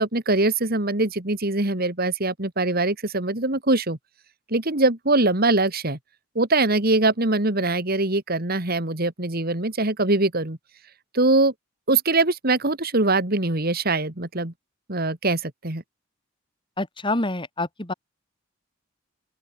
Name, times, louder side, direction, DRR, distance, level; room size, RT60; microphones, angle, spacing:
voice 1, 0.0-4.0 4.5-6.0 6.3-10.6 11.1-11.5 11.9-14.5 14.9-15.8, right 2 dB, 50° right, 2.6 m, -22 dB
voice 2, 16.8-17.9, left 2 dB, 25° left, 2.5 m, -27 dB
open air
head